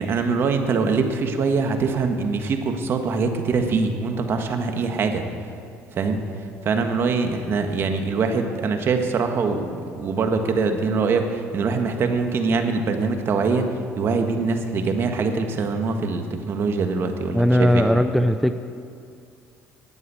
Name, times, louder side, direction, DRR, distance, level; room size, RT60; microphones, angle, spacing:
voice 1, 0.0-5.2 5.9-6.2 6.6-17.9, right 4 dB, 45° right, 5 dB, 1.4 m, -23 dB
voice 2, 17.3-18.5, equal, ahead, 7 dB, 0.5 m, -18 dB
11.0 x 9.2 x 8.4 m, 2.4 s
cardioid pair, 110°, 5 cm